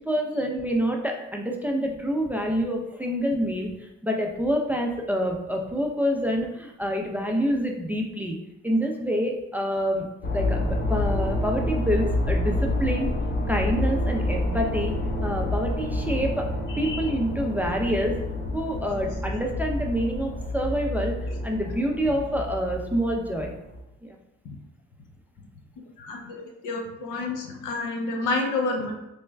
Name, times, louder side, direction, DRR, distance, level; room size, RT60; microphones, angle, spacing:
voice 1, 0.1-8.4 8.6-10.1 10.3-13.2 13.5-14.9 15.2-16.5 16.8-18.2 18.5-23.5 24.0-24.2, equal, 5° right, 1 dB, 0.4 m, -27 dB
sound 1, 10.2-23.8, left 1 dB, 35° left, 0.6 m, -28 dB
voice 2, 26.0-26.3 26.6-28.9, left 3 dB, 85° left, 2 dB, 0.7 m, -29 dB
3.3 x 2.2 x 3.1 m, 0.91 s
cardioid pair, 90°, 30 cm